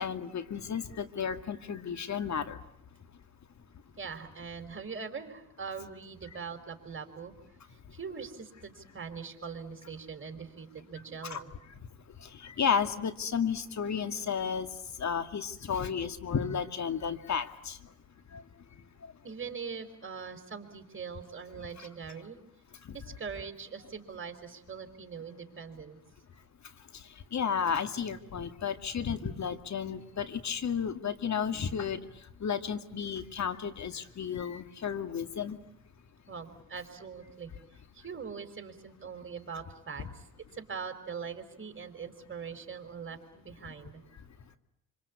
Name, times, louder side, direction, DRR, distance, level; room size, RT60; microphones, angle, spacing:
voice 1, 0.0-2.6 11.2-11.4 12.4-14.7 15.0-17.8 18.3-18.4 27.3-32.0 32.4-35.6 40.0-40.1, left 7 dB, 45° left, 9 dB, 2.3 m, -32 dB
voice 2, 4.0-7.3 7.9-11.5 19.2-22.4 22.9-26.0 36.3-37.5 37.9-40.2 40.5-44.0, right 6 dB, 30° right, 7 dB, 4.8 m, -42 dB
26.0 x 25.5 x 8.6 m, 0.76 s
hypercardioid pair, 65°, 40 cm